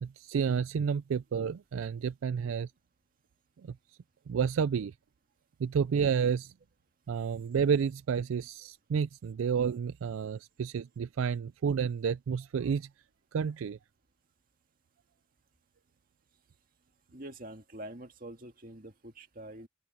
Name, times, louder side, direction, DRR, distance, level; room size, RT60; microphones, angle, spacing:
voice 1, 0.0-2.7 4.3-4.9 5.6-6.5 7.1-12.9 13.3-13.8, right 6 dB, 85° right, 0.4 m, -30 dB
voice 2, 17.1-19.7, right 1 dB, 45° right, 2.0 m, -45 dB
open air
head